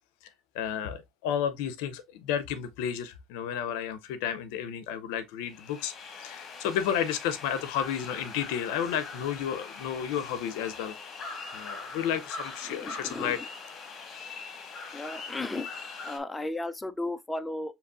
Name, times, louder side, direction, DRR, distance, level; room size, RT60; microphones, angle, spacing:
voice 1, 0.5-5.9 6.2-11.0 11.5-13.4, left 9 dB, 85° left, 0.5 m, -32 dB
sound 1, 5.5-16.2, left 4 dB, 45° left, 1.3 m, -42 dB
voice 2, 12.7-13.4 14.9-15.7 16.0-17.8, left 2 dB, 15° left, 0.4 m, -35 dB
6.5 x 2.9 x 2.4 m
supercardioid pair, 95°, 0 cm